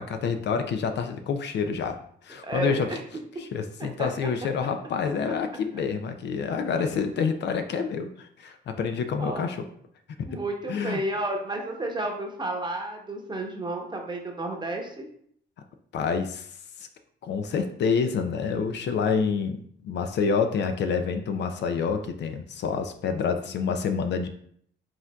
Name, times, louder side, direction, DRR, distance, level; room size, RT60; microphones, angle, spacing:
voice 1, 0.0-3.0 3.4-9.7 10.3-10.4 10.7-11.0 15.9-16.9 17.2-24.3, left 5 dB, 60° left, 7 dB, 0.5 m, -28 dB
voice 2, 2.4-3.0 4.0-4.1 9.2-9.5 10.3-15.1, right 2 dB, 20° right, 1 dB, 0.9 m, -31 dB
4.9 x 3.8 x 2.3 m, 0.64 s
cardioid pair, 90°, 20 cm